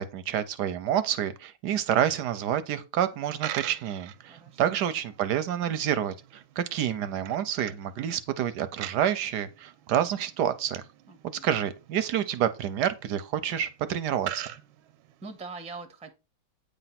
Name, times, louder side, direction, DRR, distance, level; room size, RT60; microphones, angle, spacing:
voice 1, 0.0-10.8 11.4-14.4, right 10 dB, 70° right, 1.1 m, -28 dB
Coin (dropping), 3.1-15.4, right 13 dB, 85° right, 1.4 m, -44 dB
voice 2, 4.3-5.0 11.1-11.5 15.2-16.1, right 4 dB, 5° right, 0.5 m, -43 dB
8.8 x 3.3 x 5.7 m
omnidirectional pair, 2.2 m